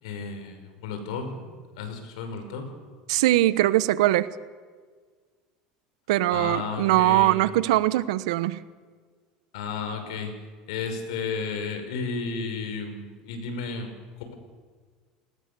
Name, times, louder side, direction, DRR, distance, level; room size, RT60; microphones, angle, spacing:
voice 1, 0.0-1.5 1.8-2.7 6.3-7.3 9.5-10.3 10.7-14.0, left 5 dB, 80° left, 6 dB, 5.5 m, -33 dB
voice 2, 3.1-4.3 6.1-8.6, right 16 dB, 80° right, 15 dB, 1.1 m, -21 dB
29.0 x 19.5 x 7.0 m, 1.5 s
supercardioid pair, 100°, 3 cm